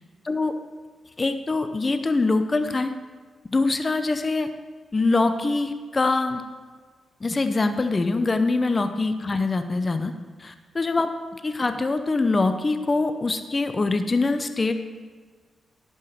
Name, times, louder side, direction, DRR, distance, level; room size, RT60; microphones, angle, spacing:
voice 1, 1.2-2.9 3.5-4.5 4.9-6.4 7.2-10.1 10.4-11.1 11.4-14.7, left 3 dB, 35° left, 8 dB, 0.8 m, -23 dB
11.0 x 5.5 x 6.5 m, 1.5 s
supercardioid pair, 55°, 0 cm